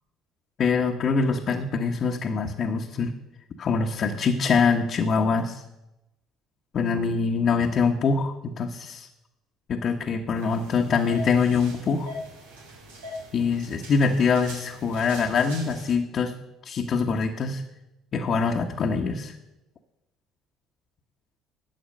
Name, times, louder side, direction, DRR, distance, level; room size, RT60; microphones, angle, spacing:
voice 1, 0.6-3.1 3.6-5.6 6.7-9.1 9.7-12.1 13.3-16.3 16.6-17.6 18.1-19.3, left 5 dB, 55° left, 0 dB, 1.2 m, -24 dB
sound 1, 10.3-15.9, left 1 dB, 90° right, 2.4 m, -42 dB
12.0 x 7.9 x 6.5 m, 0.92 s
hypercardioid pair, 65°, 0 cm